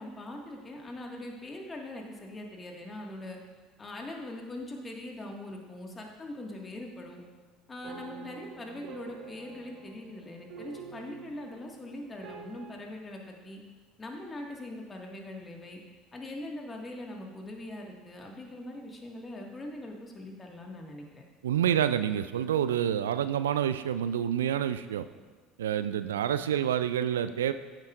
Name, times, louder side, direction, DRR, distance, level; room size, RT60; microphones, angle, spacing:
voice 1, 0.0-3.4 3.8-7.2 7.7-13.6 14.0-15.8 16.1-21.2, left 1 dB, 25° left, 0 dB, 1.9 m, -42 dB
sound 1, 7.8-12.8, right 7 dB, 60° right, 0.8 m, -48 dB
voice 2, 21.4-25.1 25.6-27.5, right 10 dB, 75° right, 12 dB, 0.3 m, -28 dB
15.0 x 7.4 x 2.6 m, 1.4 s
figure-of-eight pair, 65°, 0 cm